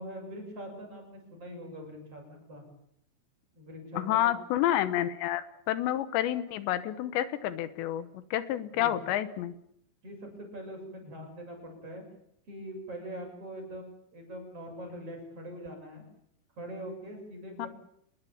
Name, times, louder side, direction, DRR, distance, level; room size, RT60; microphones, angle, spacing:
voice 1, 0.0-2.6 3.5-4.3 8.7-9.0 10.0-12.0 12.5-16.0 16.6-17.7, equal, 30° right, 2 dB, 7.9 m, -43 dB
voice 2, 4.0-9.5 17.6-17.7, left 12 dB, 80° left, 13 dB, 3.3 m, -29 dB
27.0 x 21.0 x 7.3 m, 0.73 s
omnidirectional pair, 5.0 m